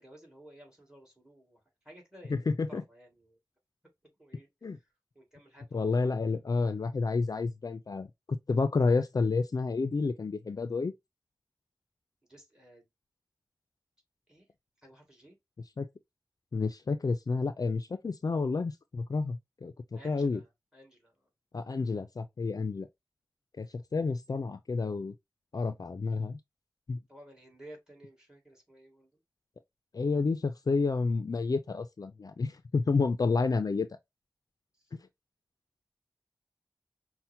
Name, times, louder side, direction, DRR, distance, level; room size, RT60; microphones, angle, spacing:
voice 1, 0.0-1.6 1.9-3.4 4.2-4.5 5.1-6.1 12.3-12.8 14.3-14.5 14.8-15.4 20.0-21.3 27.1-29.1, right 1 dB, 10° right, 2.0 m, -54 dB
voice 2, 2.3-2.8 4.6-4.8 5.7-10.9 15.8-15.9 16.5-20.4 21.5-22.9 23.6-25.1 25.5-26.4 26.9-27.0 29.9-33.9, left 4 dB, 60° left, 0.3 m, -30 dB
5.6 x 2.1 x 2.6 m
wide cardioid pair, 55°, 7 cm